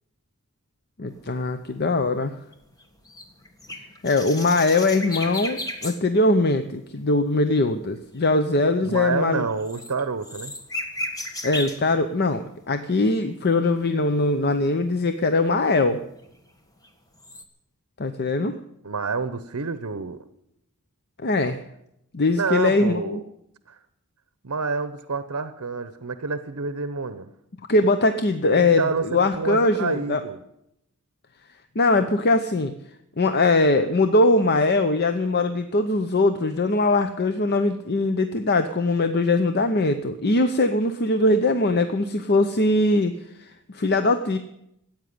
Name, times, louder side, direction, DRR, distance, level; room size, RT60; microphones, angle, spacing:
voice 1, 1.0-2.3 4.0-9.5 11.4-16.0 18.0-18.6 21.2-21.6 22.1-23.2 27.7-30.2 31.7-32.7 33.2-44.4, left 2 dB, 45° left, 9 dB, 0.8 m, -21 dB
sound 1, 1.1-6.0 6.3-6.6 6.9-11.9 12.4-13.1 13.6-14.8 15.1-15.2 15.7-16.9 17.2-17.4, left 1 dB, 15° left, 1.6 m, -36 dB
voice 2, 8.8-10.5 18.8-20.2 22.4-23.2 23.7-23.8 24.4-27.3 28.4-30.4, right 4 dB, 70° right, 12 dB, 0.8 m, -28 dB
15.0 x 9.0 x 9.6 m, 0.79 s
head